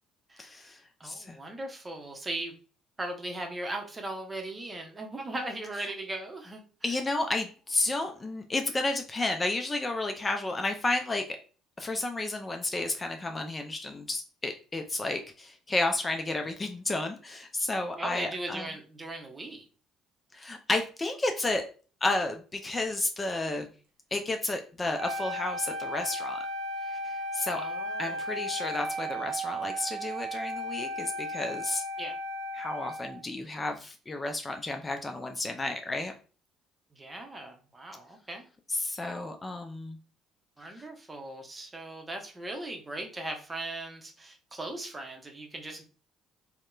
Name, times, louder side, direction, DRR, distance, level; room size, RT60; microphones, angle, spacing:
voice 1, 0.4-1.4 6.8-11.2 11.8-18.7 20.3-21.7 22.0-23.7 24.1-26.4 26.9-27.6 28.0-31.8 32.5-36.1 38.7-40.0 40.8-40.9, left 2 dB, 25° left, 5 dB, 0.3 m, -32 dB
voice 2, 1.0-2.5 3.0-6.6 18.0-19.7 27.6-28.2 32.0-32.1 36.9-38.4 40.6-45.8, right 2 dB, 25° right, 3 dB, 0.7 m, -38 dB
Wind instrument woodwind instrument, 24.9-33.2, equal, 70° right, 0.4 m, -35 dB
2.8 x 2.0 x 2.3 m, 0.38 s
hypercardioid pair, 55°, 0 cm